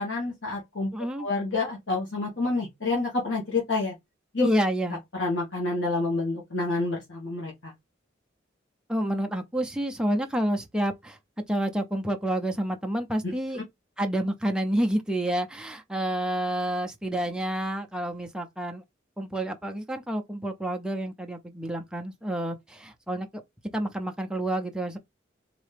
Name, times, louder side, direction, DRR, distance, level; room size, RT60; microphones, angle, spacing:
voice 1, 0.0-0.9 1.2-3.9 4.3-4.5 5.1-7.7 13.2-13.6, left 3 dB, 85° left, 1.4 m, -28 dB
voice 2, 0.9-1.3 4.4-5.0 8.9-11.2 11.5-13.6 14.0-18.8 19.2-23.3 23.7-25.0, right 1 dB, 5° right, 0.5 m, -29 dB
4.0 x 2.7 x 3.3 m
head